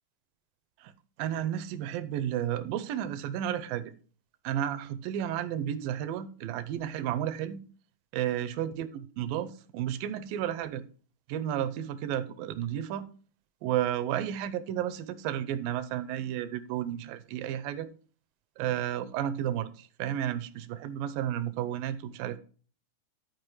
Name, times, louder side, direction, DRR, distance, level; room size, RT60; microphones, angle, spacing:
voice 1, 1.2-3.9 4.4-7.6 8.1-10.8 11.3-13.1 13.6-17.9 18.6-22.4, right 11 dB, 85° right, 2.4 m, -32 dB
12.5 x 4.8 x 4.7 m
omnidirectional pair, 3.9 m